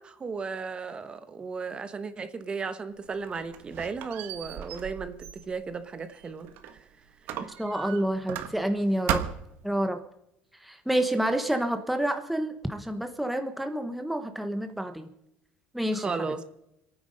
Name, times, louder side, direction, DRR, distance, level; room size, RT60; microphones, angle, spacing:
voice 1, 0.0-6.8 7.3-7.5 15.9-16.4, right 5 dB, 30° right, 11 dB, 1.2 m, -35 dB
Squeak, 3.0-6.8 7.3-8.8 9.1-9.6, right 10 dB, 70° right, 1.4 m, -36 dB
voice 2, 7.6-9.2 9.6-10.0 10.6-15.1 15.7-16.3, right 1 dB, ahead, 7 dB, 1.0 m, -28 dB
27.0 x 9.4 x 5.2 m, 0.83 s
cardioid pair, 115°, 4 cm